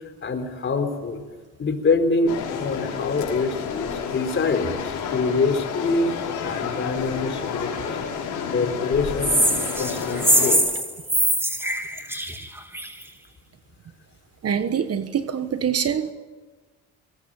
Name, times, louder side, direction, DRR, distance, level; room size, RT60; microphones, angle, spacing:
voice 1, 0.2-1.2 1.6-6.1 6.4-8.0 8.5-10.6, left 3 dB, 40° left, 7 dB, 4.0 m, -25 dB
sound 1, 2.3-10.6, left 7 dB, 85° left, 5.9 m, -30 dB
sound 2, 9.2-13.0, right 1 dB, 10° right, 3.1 m, -22 dB
voice 2, 14.4-16.1, right 8 dB, 50° right, 10 dB, 1.4 m, -24 dB
22.5 x 18.5 x 9.1 m, 1.3 s
cardioid pair, 90°, 30 cm